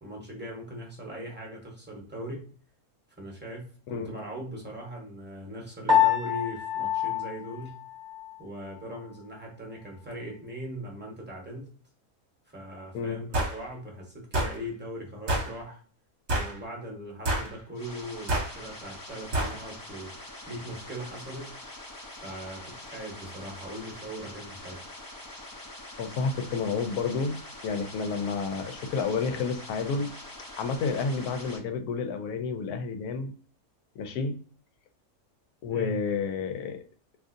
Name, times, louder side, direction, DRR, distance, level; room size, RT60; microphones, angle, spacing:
voice 1, 0.0-2.5 3.2-7.8 8.4-11.7 12.5-15.8 16.3-20.1 20.5-21.5 22.2-24.8 35.7-36.0, equal, 10° right, -1 dB, 0.9 m, -40 dB
Piano, 5.9-8.4, left 9 dB, 35° right, 1.0 m, -26 dB
sound 1, 13.3-13.6 14.3-14.6 15.3-15.5 16.3-16.6 17.3-17.5 18.3-18.5 19.3-19.6, right 1 dB, 50° right, 1.2 m, -27 dB
sound 2, 17.7-31.6, left 1 dB, 30° left, 0.4 m, -44 dB
voice 2, 26.0-27.4 27.6-30.1 30.6-33.3 34.0-34.4 35.6-36.8, left 5 dB, 80° left, 7 dB, 1.1 m, -30 dB
3.7 x 2.7 x 2.5 m, 0.43 s
omnidirectional pair, 1.6 m